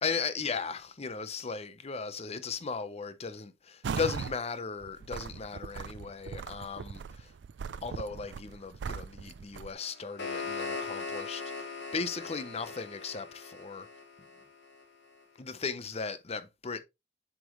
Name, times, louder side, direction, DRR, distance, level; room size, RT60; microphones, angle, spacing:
voice 1, 0.0-7.3 7.8-13.9 15.4-16.8, left 5 dB, 35° left, 0.7 m, -37 dB
sound 1, 3.8-4.4 4.8-9.7, right 6 dB, 70° right, 0.4 m, -39 dB
sound 2, 9.8-14.8, left 4 dB, 75° left, 2.9 m, -40 dB
7.6 x 5.1 x 3.0 m
head